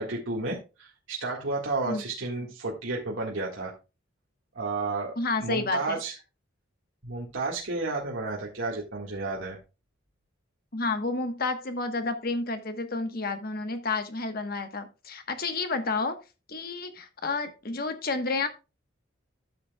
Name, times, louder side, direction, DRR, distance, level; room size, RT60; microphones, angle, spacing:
voice 1, 0.0-3.7 4.5-6.1 7.0-9.6, right 3 dB, 75° right, -2 dB, 1.8 m, -32 dB
voice 2, 5.2-6.0 10.7-16.2 16.5-18.5, left 3 dB, 50° left, 8 dB, 1.2 m, -30 dB
13.0 x 7.2 x 2.3 m, 0.29 s
head